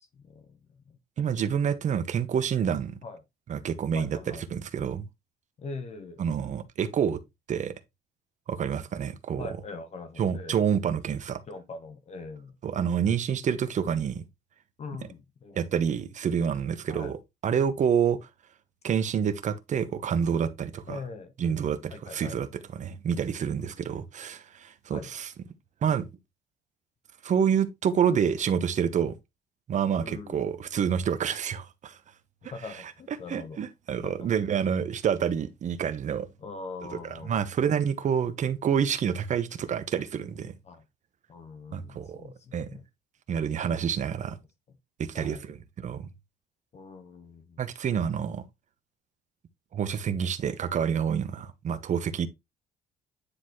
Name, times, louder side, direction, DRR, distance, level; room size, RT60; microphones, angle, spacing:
voice 1, 0.0-1.0 3.0-3.2 3.9-4.4 5.6-6.4 9.4-10.7 11.5-12.6 14.8-16.0 16.9-17.1 20.9-21.3 21.9-22.4 23.6-24.0 24.9-25.1 29.9-30.5 32.4-33.6 34.0-34.3 36.4-37.5 40.6-40.8 41.3-42.8 44.7-44.8 45.1-45.5 46.7-47.6, left 4 dB, 40° left, 1.3 m, -42 dB
voice 2, 1.2-3.0 3.5-4.1 4.5-5.1 6.2-7.2 7.5-7.7 8.5-9.5 10.2-11.4 12.6-14.2 15.5-17.2 17.4-18.2 18.8-21.0 21.4-22.5 22.8-25.3 25.8-26.1 27.2-29.2 29.7-32.0 33.3-36.3 37.3-40.5 41.7-42.7 43.3-44.4 45.0-45.6 45.8-46.1 47.6-48.4 49.7-52.3, right 8 dB, 45° right, 1.0 m, -28 dB
9.8 x 4.0 x 3.2 m
cardioid pair, 110°, 17 cm